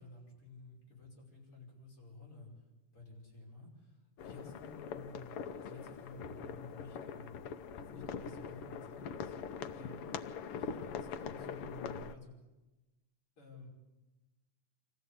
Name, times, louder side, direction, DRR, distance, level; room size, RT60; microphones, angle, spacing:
voice 1, 0.0-2.5 2.9-5.3 5.6-7.4 7.9-9.4 9.7-12.3 13.4-13.7, left 2 dB, 45° left, -3 dB, 6.3 m, -52 dB
sound 1, 4.2-12.1, left 6 dB, 75° left, 1.3 m, -43 dB
26.0 x 15.0 x 8.6 m, 1.1 s
omnidirectional pair, 3.6 m